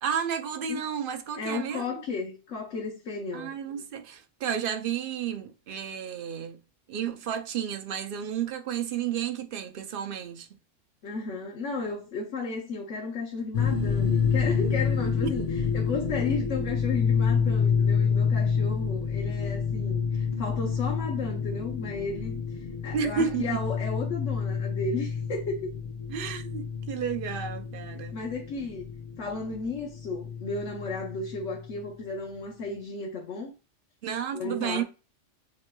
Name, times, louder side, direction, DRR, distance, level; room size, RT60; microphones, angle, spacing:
voice 1, 0.0-2.0 3.3-6.6 6.9-10.5 22.9-23.6 26.1-28.2 34.0-34.8, right 8 dB, 55° right, 0.7 m, -32 dB
voice 2, 1.4-3.5 11.0-15.4 15.7-22.4 22.8-25.7 27.9-28.9 29.2-33.5 34.3-34.8, left 4 dB, 75° left, 1.2 m, -34 dB
sound 1, 13.5-31.8, left 6 dB, 40° left, 0.5 m, -28 dB
7.3 x 3.2 x 2.2 m
omnidirectional pair, 1.3 m